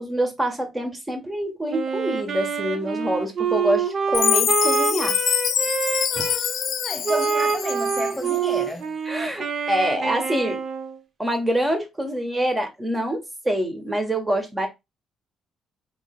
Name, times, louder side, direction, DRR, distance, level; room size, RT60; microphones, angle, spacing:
voice 1, 0.0-5.2 6.1-6.2 9.1-10.6 11.2-14.7, right 1 dB, 15° right, 1.3 m, -26 dB
Wind instrument woodwind instrument, 1.7-6.4 7.0-11.0, right 5 dB, 50° right, 0.9 m, -26 dB
Chime, 4.1-8.4, left 9 dB, 70° left, 0.4 m, -25 dB
voice 2, 6.1-9.0, equal, ahead, 0.4 m, -31 dB
3.7 x 3.2 x 2.3 m
cardioid pair, 75°, 0 cm